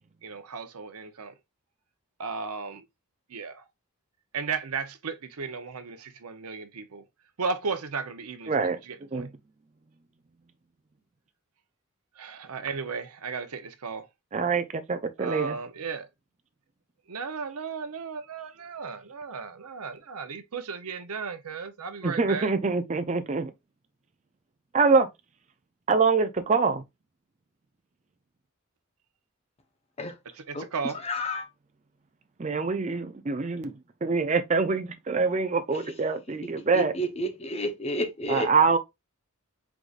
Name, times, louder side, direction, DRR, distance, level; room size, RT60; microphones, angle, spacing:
voice 1, 0.2-1.3 2.2-2.8 3.3-3.6 4.3-7.0 7.4-8.5 8.9-9.2 12.2-14.1 15.2-16.1 17.1-22.5 30.5-31.0, right 5 dB, 85° right, 0.7 m, -35 dB
voice 2, 8.5-8.8 9.1-9.3 14.3-15.6 22.0-23.5 24.7-25.1 25.9-26.8 32.4-36.9 38.3-38.8, right 4 dB, 30° right, 0.4 m, -25 dB
voice 3, 31.0-31.5 36.7-38.5, equal, 30° left, 0.8 m, -30 dB
4.7 x 3.9 x 2.4 m
head